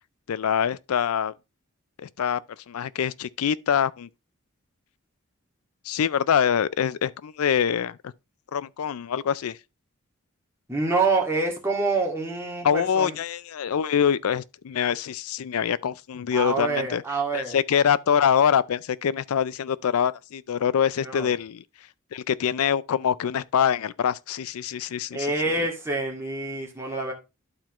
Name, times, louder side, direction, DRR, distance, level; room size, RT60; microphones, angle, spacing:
voice 1, 0.3-1.3 2.0-2.4 2.7-4.1 5.9-8.0 8.5-9.6 12.6-17.0 17.3-21.6 22.1-25.3, left 8 dB, 80° left, 0.4 m, -24 dB
voice 2, 10.7-13.2 16.3-17.6 21.0-21.3 25.1-27.1, right 3 dB, 10° right, 2.0 m, -26 dB
12.0 x 4.4 x 3.0 m
head